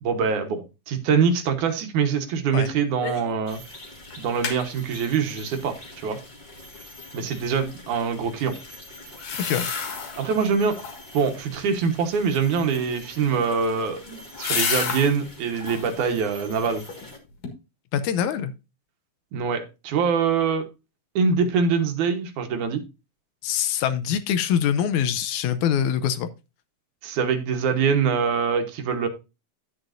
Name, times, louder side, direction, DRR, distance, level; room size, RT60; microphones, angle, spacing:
voice 1, 0.0-3.6 4.2-6.2 7.1-8.5 10.2-10.8 11.1-14.0 14.4-16.8 19.3-20.7 21.2-22.8 27.0-29.1, right 6 dB, 75° right, 6 dB, 2.5 m, -24 dB
sound 1, 3.0-3.4 3.7-3.8 4.1-4.6 9.1-10.3 10.7-11.2 13.2-15.1 15.5-16.0 16.4-17.1 17.4-17.5, left 5 dB, 60° left, 2.9 m, -30 dB
sound 2, 3.5-17.2, left 1 dB, 15° left, 1.8 m, -45 dB
voice 2, 9.4-9.7 17.9-18.5 23.4-26.3, left 9 dB, 80° left, 12 dB, 2.0 m, -24 dB
10.5 x 9.0 x 2.5 m, 0.27 s
omnidirectional pair, 3.6 m